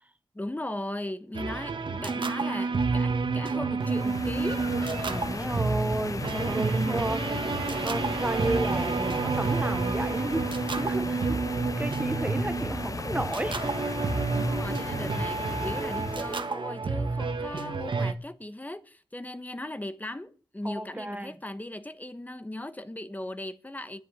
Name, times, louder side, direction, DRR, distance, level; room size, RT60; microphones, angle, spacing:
voice 1, 0.3-4.6 14.3-24.0, left 1 dB, 20° left, 1.2 m, -38 dB
sound 1, 1.3-18.1, right 4 dB, 75° right, 1.5 m, -29 dB
sound 2, 3.8-16.4, left 3 dB, 45° left, 0.7 m, -35 dB
voice 2, 5.0-7.3 7.8-11.5 11.8-13.6 20.6-21.3, right 1 dB, 20° right, 0.8 m, -32 dB
10.5 x 10.0 x 9.6 m
wide cardioid pair, 95°, 8 cm